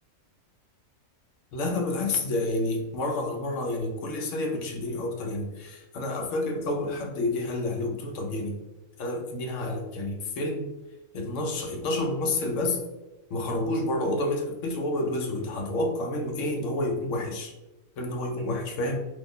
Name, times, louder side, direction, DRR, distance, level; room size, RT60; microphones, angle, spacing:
voice 1, 1.5-8.6 9.0-10.7 11.1-12.8 13.3-17.5 18.0-19.0, left 2 dB, 70° left, 2 dB, 0.9 m, -29 dB
3.0 x 2.0 x 3.5 m, 1.1 s
omnidirectional pair, 1.4 m